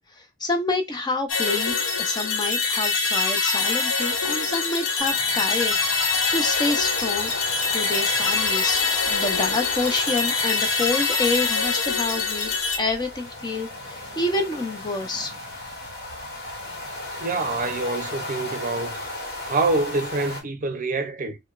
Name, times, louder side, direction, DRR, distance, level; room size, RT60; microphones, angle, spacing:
voice 1, 0.2-7.3 7.7-15.3, left 2 dB, 20° left, 0.5 m, -28 dB
sound 1, 1.3-12.8, left 4 dB, 75° left, 0.9 m, -24 dB
sound 2, 5.0-20.4, left 2 dB, 55° left, 1.3 m, -35 dB
voice 2, 17.2-19.0 19.4-21.4, right 3 dB, 40° right, 0.6 m, -26 dB
4.9 x 2.1 x 2.4 m
head